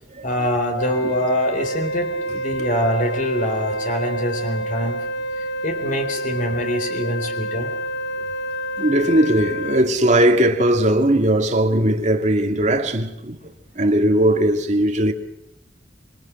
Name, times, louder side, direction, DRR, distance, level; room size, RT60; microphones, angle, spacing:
voice 1, 0.2-5.1 5.6-7.7, equal, 45° left, 4.0 m, -24 dB
Wind instrument woodwind instrument, 0.8-9.9, equal, 70° left, 1.3 m, -28 dB
voice 2, 8.8-13.4 13.7-15.1, right 1 dB, 40° right, 2.6 m, -18 dB
26.5 x 24.5 x 6.1 m
head